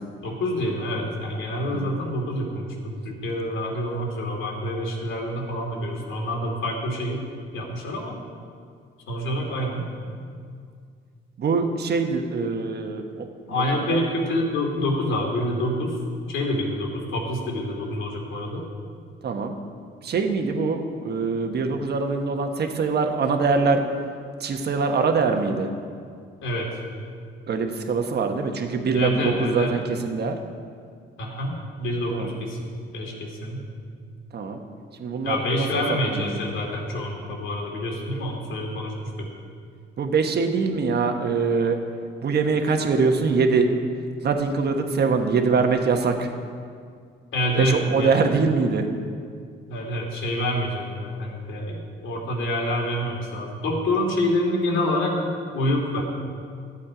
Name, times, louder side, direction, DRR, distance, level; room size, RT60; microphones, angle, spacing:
voice 1, 0.2-7.2 7.5-8.1 9.1-9.9 13.5-16.0 16.3-18.6 26.4-26.7 28.9-29.7 31.2-33.6 35.2-39.3 47.3-48.1 49.7-55.2 55.5-56.0, left 1 dB, 75° left, 0 dB, 2.8 m, -27 dB
voice 2, 11.4-13.6 13.9-14.0 19.2-19.6 20.0-23.8 24.4-25.7 27.5-30.4 32.1-32.3 34.3-34.6 35.0-36.4 40.0-41.8 42.2-43.7 44.2-46.3 47.6-48.9, right 4 dB, 55° right, 5 dB, 1.3 m, -23 dB
14.0 x 8.5 x 5.0 m, 2.2 s
cardioid pair, 90°, 20 cm